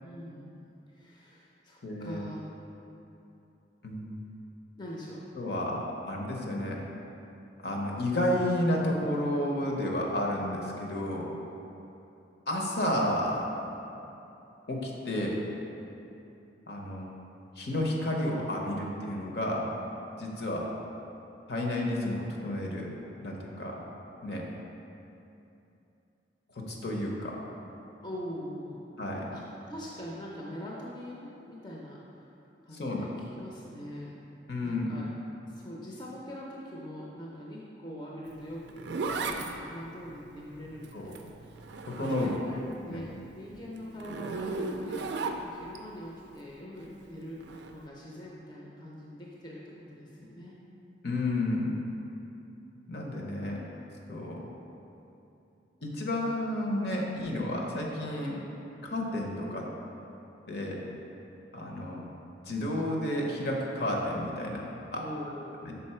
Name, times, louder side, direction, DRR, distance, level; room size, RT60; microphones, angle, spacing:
voice 1, 0.0-2.5 4.8-5.2 28.0-28.8 29.1-32.3 32.6-34.1 34.6-35.1 35.5-39.0 39.3-49.6 49.9-50.6 53.6-53.7 64.9-65.7, equal, 25° left, -4 dB, 0.5 m, -43 dB
voice 2, 1.8-2.2 3.8-4.1 5.4-6.8 7.6-11.3 12.5-13.5 14.7-15.4 16.7-17.1 17.6-19.7 20.2-20.7 21.5-22.9 23.2-23.8 24.2-24.4 26.7-27.4 29.0-29.3 32.7-33.1 34.5-34.9 40.9-41.1 41.8-42.3 42.9-43.0 51.0-51.7 52.9-53.6 54.1-54.4 55.8-58.4 58.8-59.6 60.5-60.8 61.5-62.1 62.4-64.6 64.9-65.0 65.7-65.8, left 1 dB, 55° left, -1 dB, 0.8 m, -31 dB
Zipper (clothing), 38.3-42.8 43.1-45.8 47.4-47.7, right 3 dB, 65° right, 0.4 m, -36 dB
5.7 x 4.1 x 4.3 m, 2.9 s
head